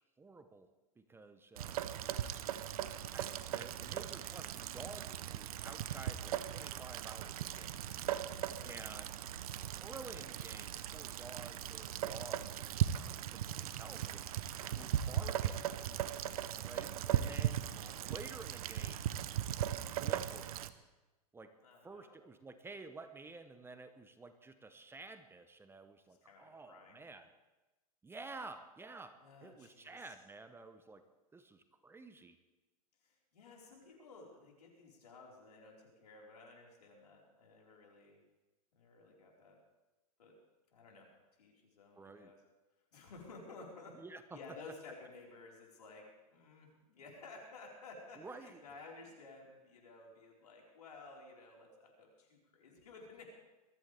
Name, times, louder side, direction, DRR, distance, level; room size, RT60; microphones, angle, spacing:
voice 1, 0.2-0.7 1.0-1.8 3.1-7.8 8.6-9.1 9.8-15.7 16.6-17.7 18.0-19.0 19.8-20.6 21.3-21.5 21.8-27.3 28.0-31.0 31.3-32.4 42.0-42.3 44.0-44.4 48.2-48.6, right 3 dB, 10° right, 9 dB, 0.9 m, -52 dB
Rain, 1.6-20.7, right 11 dB, 65° right, 0.9 m, -38 dB
voice 2, 8.4-9.1 16.5-17.0 17.7-17.9 21.6-22.2 26.1-27.1 29.2-30.1 33.0-38.2 38.7-39.6 40.2-40.3 40.7-41.1 41.4-42.4 42.9-44.0 44.3-53.3, left 3 dB, 80° left, -2 dB, 4.8 m, -55 dB
22.0 x 14.0 x 3.5 m, 1.1 s
hypercardioid pair, 105°, 20 cm